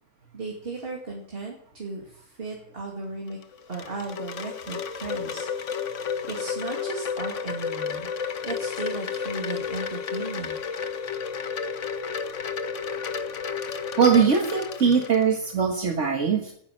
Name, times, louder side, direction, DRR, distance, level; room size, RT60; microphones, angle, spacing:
voice 1, 0.3-3.4 3.7-5.5 5.8-8.1 8.4-10.9, right 3 dB, 45° right, -1 dB, 2.8 m, -36 dB
Wind chime, 3.3-15.5, left 6 dB, 65° left, 1.3 m, -32 dB
voice 2, 14.0-16.5, right 6 dB, 60° right, 2 dB, 1.9 m, -21 dB
13.5 x 9.9 x 9.0 m, 0.68 s
omnidirectional pair, 1.4 m